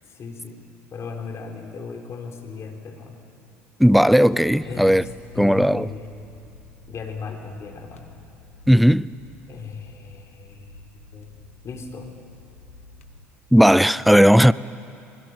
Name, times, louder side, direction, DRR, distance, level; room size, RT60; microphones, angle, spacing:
voice 1, 0.1-0.6 0.9-3.3 4.6-5.1 5.3-6.1 6.9-8.1 9.5-11.3 11.6-12.1, left 5 dB, 40° left, 4.3 m, -36 dB
sound 1, 3.8-13.3, left 2 dB, 90° left, 1.6 m, -49 dB
voice 2, 3.8-5.0 5.4-5.9 8.7-9.1 13.5-14.5, equal, ahead, 0.5 m, -15 dB
27.5 x 21.0 x 9.0 m
hypercardioid pair, 65°, 7 cm